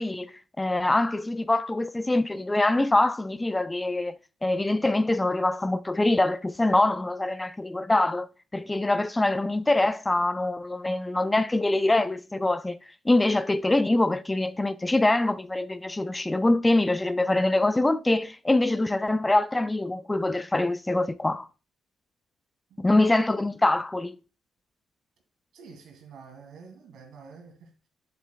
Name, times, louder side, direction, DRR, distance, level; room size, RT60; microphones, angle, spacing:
voice 1, 0.0-4.1 4.4-12.8 13.1-21.5 22.8-24.2, left 2 dB, 15° left, 0.4 m, -24 dB
voice 2, 25.5-27.9, right 5 dB, 80° right, 2.4 m, -48 dB
7.3 x 7.2 x 2.2 m
cardioid pair, 90°, 0 cm